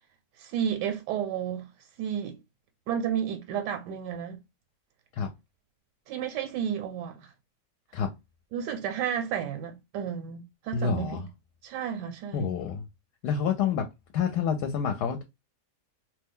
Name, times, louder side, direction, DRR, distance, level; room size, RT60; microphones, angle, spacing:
voice 1, 0.4-1.7 2.0-2.4 2.9-4.4 6.1-7.3 8.5-11.2 11.6-12.5, right 8 dB, 85° right, 1.2 m, -32 dB
voice 2, 10.7-11.2 12.3-12.8 13.2-13.8 14.1-15.2, left 7 dB, 75° left, 1.1 m, -28 dB
2.8 x 2.2 x 3.5 m
omnidirectional pair, 1.8 m